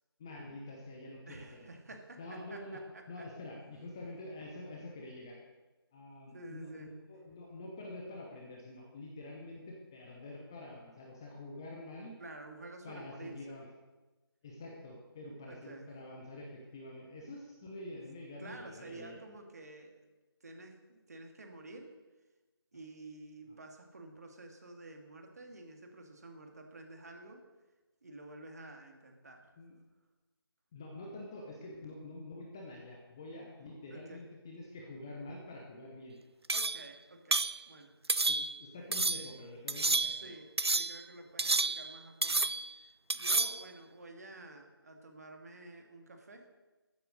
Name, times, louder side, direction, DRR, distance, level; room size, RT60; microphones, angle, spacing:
voice 1, 0.2-1.7 2.2-2.8 3.1-5.4 5.9-12.1 12.8-13.7 14.4-19.2 29.6-29.8 30.7-36.2 38.3-40.4, left 1 dB, 10° left, -1 dB, 0.6 m, -47 dB
voice 2, 1.3-3.2 6.3-6.9 12.2-13.6 15.5-15.9 18.4-20.1 20.4-21.9 22.7-27.4 28.0-29.5 33.9-34.2 36.5-38.0 40.2-46.5, right 2 dB, 40° right, 3 dB, 2.0 m, -50 dB
sound 1, 36.5-36.9 37.3-37.6 38.1-38.6 38.9-39.3 39.7-40.3 40.6-41.0 41.4-42.0 42.2-42.7 43.1-43.6, right 3 dB, 85° right, 0.5 m, -30 dB
14.5 x 8.3 x 6.4 m, 1.2 s
figure-of-eight pair, 165°, 13 cm